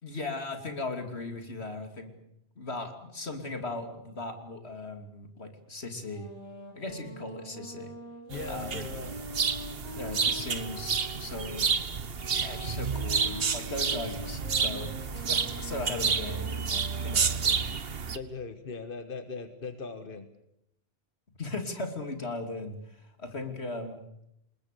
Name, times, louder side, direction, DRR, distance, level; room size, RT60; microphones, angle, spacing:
voice 1, 0.0-2.1 2.6-6.3 6.7-7.9 8.5-8.9 10.0-11.7 12.3-16.5 16.8-17.7 21.4-24.0, left 2 dB, 85° left, 6 dB, 3.3 m, -38 dB
sound 1, 6.1-11.5 12.2-17.5, equal, 25° left, 7.3 m, -45 dB
voice 2, 8.3-9.1 18.1-20.3, left 4 dB, 55° left, 9 dB, 1.7 m, -39 dB
sound 2, 8.3-18.2, right 6 dB, 65° right, 1.4 m, -30 dB
28.5 x 21.0 x 6.9 m, 0.78 s
omnidirectional pair, 1.1 m